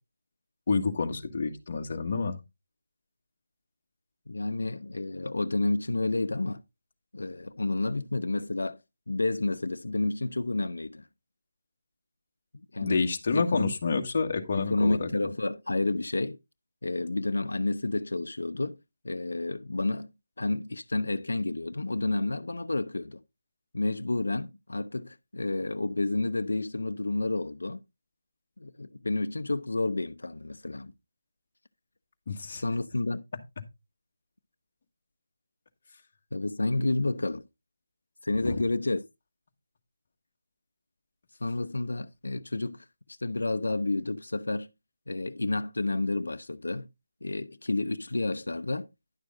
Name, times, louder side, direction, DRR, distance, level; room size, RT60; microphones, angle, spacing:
voice 1, 0.7-2.4 12.8-15.1 32.3-32.6 38.4-38.6, left 4 dB, 35° left, 1.5 m, -28 dB
voice 2, 4.3-6.6 7.1-8.8 9.1-11.1 12.5-13.0 13.3-13.7 14.6-16.4 16.8-18.8 19.0-20.1 20.4-23.2 23.7-27.8 28.6-30.9 32.6-33.2 36.3-37.4 38.2-39.0 41.4-44.7 45.1-46.9 47.2-48.9, left 2 dB, 90° left, 0.7 m, -30 dB
11.0 x 6.4 x 3.7 m
figure-of-eight pair, 175°, 0 cm